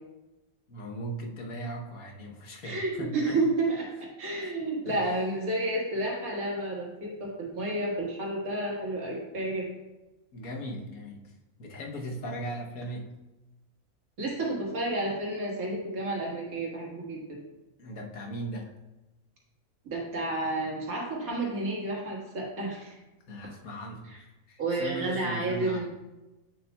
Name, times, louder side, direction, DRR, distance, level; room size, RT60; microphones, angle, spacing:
voice 1, 0.7-3.4 4.4-4.5 4.8-5.1 10.3-13.1 17.8-18.7 23.3-24.1 24.5-25.9, right 1 dB, 90° left, 1 dB, 1.5 m, -38 dB
voice 2, 2.6-3.9 4.2-9.7 14.2-17.4 19.9-22.9 24.1-24.2 24.6-25.9, right 2 dB, 80° right, -2 dB, 2.1 m, -31 dB
8.3 x 6.9 x 2.3 m, 1.0 s
omnidirectional pair, 1.5 m